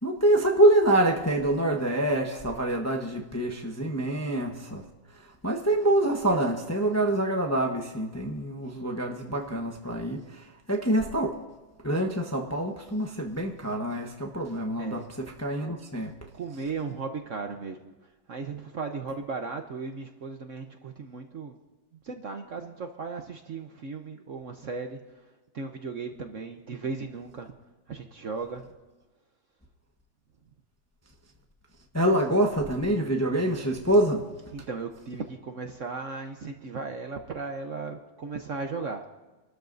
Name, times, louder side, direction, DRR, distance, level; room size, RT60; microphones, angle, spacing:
voice 1, 0.0-4.8 5.1-11.4 11.8-16.1 31.9-34.3, right 1 dB, 10° left, 1 dB, 0.8 m, -26 dB
voice 2, 16.3-17.9 18.3-21.6 22.0-25.2 25.5-27.5 27.9-28.7 34.5-39.1, right 4 dB, 55° right, 5 dB, 1.0 m, -36 dB
27.0 x 13.0 x 2.6 m, 1.2 s
omnidirectional pair, 2.0 m